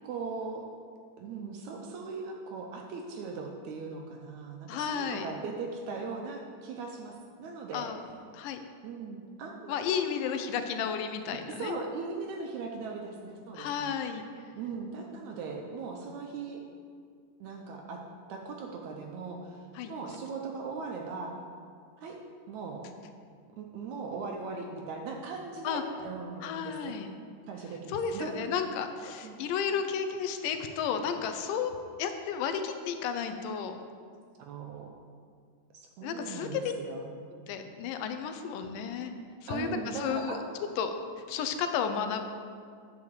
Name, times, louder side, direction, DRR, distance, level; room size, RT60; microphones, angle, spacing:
voice 1, 0.0-0.7 1.2-7.9 8.8-10.2 11.3-14.0 14.6-16.6 17.4-18.0 18.3-21.4 22.0-22.2 22.5-22.9 23.6-27.0 27.5-28.8 29.2-29.4 34.4-35.0 35.7-37.1 39.5-40.4, right 4 dB, 75° right, 1 dB, 1.8 m, -39 dB
voice 2, 4.7-5.3 7.7-8.0 8.3-8.6 9.7-11.8 13.5-14.2 19.8-19.9 25.6-25.8 26.4-27.1 27.9-33.8 36.0-36.7 37.3-39.1 39.4-40.4 40.8-40.9 41.3-42.2, left 7 dB, 85° left, 7 dB, 2.3 m, -33 dB
9.6 x 4.8 x 7.0 m, 2.2 s
omnidirectional pair, 3.8 m